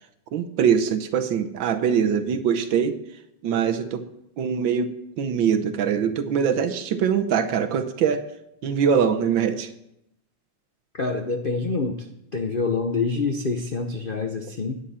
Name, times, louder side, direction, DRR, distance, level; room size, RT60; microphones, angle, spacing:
voice 1, 0.3-3.0 3.4-4.1 4.4-8.2 8.6-9.7, right 7 dB, 65° right, 8 dB, 1.5 m, -23 dB
voice 2, 11.0-12.0 12.3-14.8, left 4 dB, 70° left, 4 dB, 0.5 m, -26 dB
16.5 x 10.0 x 4.3 m, 0.82 s
omnidirectional pair, 2.4 m